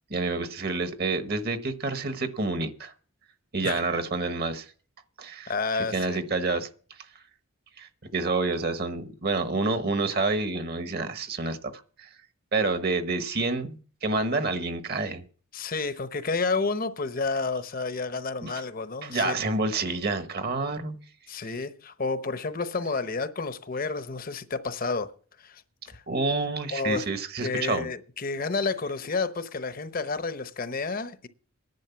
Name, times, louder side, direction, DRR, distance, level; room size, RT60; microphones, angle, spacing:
voice 1, 0.1-2.9 3.5-4.7 5.2-5.5 5.9-6.7 7.8-12.1 12.5-15.2 18.4-18.5 19.0-21.0 26.1-27.9, right 3 dB, 45° right, 1.1 m, -28 dB
voice 2, 5.5-6.2 15.5-19.5 21.3-25.1 25.4-25.6 25.9-26.0 26.7-27.0 27.4-31.3, left 4 dB, 40° left, 0.8 m, -30 dB
11.0 x 8.8 x 7.0 m
head